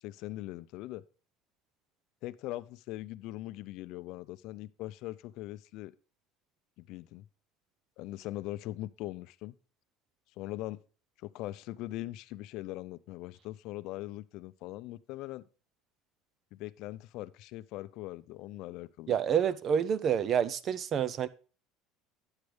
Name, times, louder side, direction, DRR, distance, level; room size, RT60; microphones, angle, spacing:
voice 1, 0.0-1.0 2.2-5.9 6.8-7.3 8.0-9.5 10.4-10.8 11.2-15.4 16.5-19.2, left 17 dB, 65° left, 0.5 m, -41 dB
voice 2, 19.1-21.3, right 8 dB, 40° right, 0.6 m, -28 dB
9.7 x 7.8 x 3.3 m
supercardioid pair, 120°, 0 cm